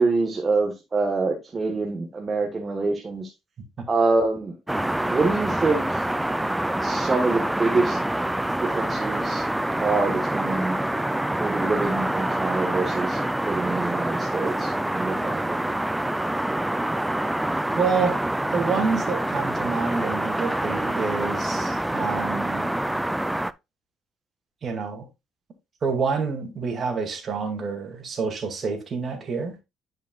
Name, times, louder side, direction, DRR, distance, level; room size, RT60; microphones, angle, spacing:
voice 1, 0.0-3.3 3.9-4.6 5.0-6.0 6.8-8.0 8.6-9.4 9.8-10.7 11.4-15.6, right 3 dB, 30° right, 1.2 m, -25 dB
sound 1, 4.7-23.5, right 1 dB, 5° right, 0.3 m, -26 dB
voice 2, 17.8-18.2 18.5-22.7 24.6-25.1 25.8-29.5, right 5 dB, 45° right, 2.1 m, -27 dB
10.5 x 5.1 x 2.3 m
cardioid pair, 105°, 0 cm